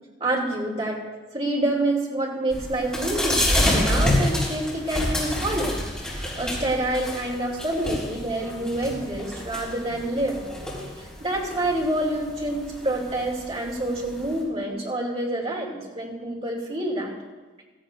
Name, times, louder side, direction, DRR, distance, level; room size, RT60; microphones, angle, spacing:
voice 1, 0.2-1.0 1.3-10.4 11.0-17.1, right 1 dB, 35° right, -4 dB, 2.8 m, -27 dB
sound 1, 2.5-14.4, left 1 dB, 5° left, 4.4 m, -28 dB
15.5 x 14.5 x 2.7 m, 1.3 s
head